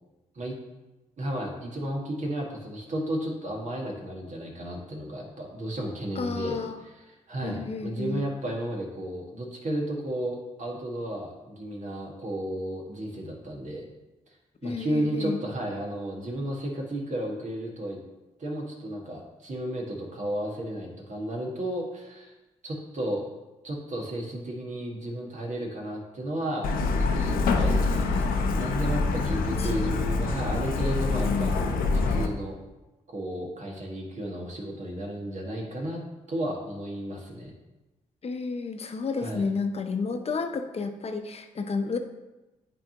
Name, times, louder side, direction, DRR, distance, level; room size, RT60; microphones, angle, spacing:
voice 1, 1.2-13.8 14.6-18.0 18.4-22.3 22.6-23.2 23.6-31.5 31.9-32.6 33.1-36.0 36.3-37.5 39.2-39.4, right 1 dB, 55° right, -1 dB, 1.8 m, -33 dB
voice 2, 6.2-6.7 7.4-8.2 14.6-15.4 27.9-28.3 29.6-29.7 30.1-30.3 38.2-42.0, left 4 dB, 45° left, 7 dB, 0.7 m, -31 dB
Truck, 26.6-32.3, left 3 dB, 80° left, 0.6 m, -25 dB
9.7 x 3.5 x 2.9 m, 1.0 s
supercardioid pair, 50°, 15 cm